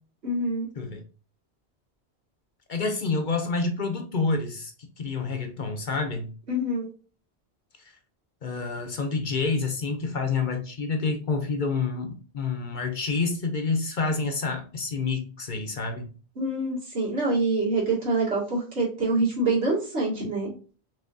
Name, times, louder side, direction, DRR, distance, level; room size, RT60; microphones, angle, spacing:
voice 1, 0.2-0.7 6.5-6.9 16.4-20.5, right 2 dB, 80° right, 2.5 m, -25 dB
voice 2, 2.7-4.7 5.0-6.3 8.4-16.1, left 4 dB, 50° left, 0.8 m, -28 dB
5.5 x 3.2 x 2.6 m
omnidirectional pair, 1.1 m